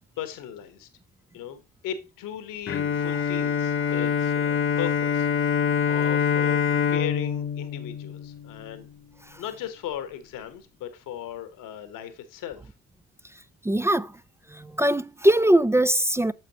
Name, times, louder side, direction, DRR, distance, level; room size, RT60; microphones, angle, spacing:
voice 1, 0.2-0.9 1.3-6.6 6.9-8.9 9.4-12.7, left 10 dB, 70° left, 1.2 m, -37 dB
Bowed string instrument, 2.7-8.8, left 7 dB, 40° left, 0.8 m, -25 dB
voice 2, 13.6-14.1 14.5-16.3, right 1 dB, 10° right, 0.3 m, -21 dB
9.1 x 6.7 x 2.9 m
hypercardioid pair, 50°, 34 cm